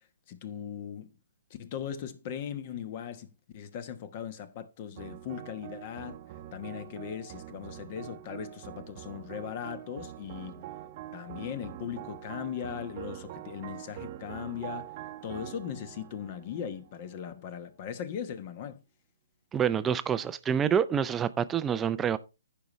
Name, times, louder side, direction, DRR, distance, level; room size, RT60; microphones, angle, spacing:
voice 1, 0.3-1.1 1.5-6.2 6.5-10.7 11.1-14.9 15.2-18.8, left 8 dB, 35° left, 1.1 m, -39 dB
sound 1, 5.0-17.4, right 12 dB, 35° right, 0.9 m, -44 dB
voice 2, 19.5-22.2, right 8 dB, 10° right, 0.5 m, -27 dB
15.0 x 5.4 x 3.1 m
hypercardioid pair, 150°, 0 cm